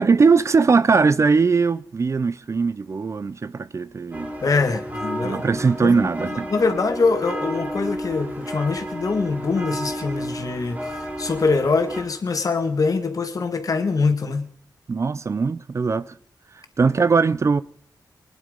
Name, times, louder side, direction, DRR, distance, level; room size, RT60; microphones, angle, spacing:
voice 1, 0.0-4.3 5.2-6.5 14.9-16.1 16.8-17.6, right 4 dB, 40° right, 0.5 m, -20 dB
sound 1, 4.1-12.0, equal, 20° right, 2.8 m, -32 dB
voice 2, 4.4-14.5, left 4 dB, 50° left, 2.0 m, -24 dB
24.5 x 10.5 x 5.2 m
wide cardioid pair, 165°, 7 cm